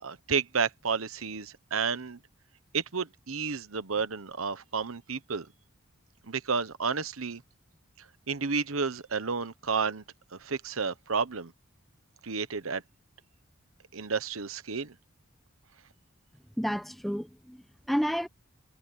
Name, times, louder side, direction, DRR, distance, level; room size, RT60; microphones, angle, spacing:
voice 1, 0.0-2.2 2.7-5.5 6.3-7.4 8.3-10.0 10.4-11.5 12.2-12.8 13.9-14.9, right 5 dB, 80° right, 1.1 m, -31 dB
voice 2, 16.6-18.3, equal, ahead, 0.8 m, -31 dB
head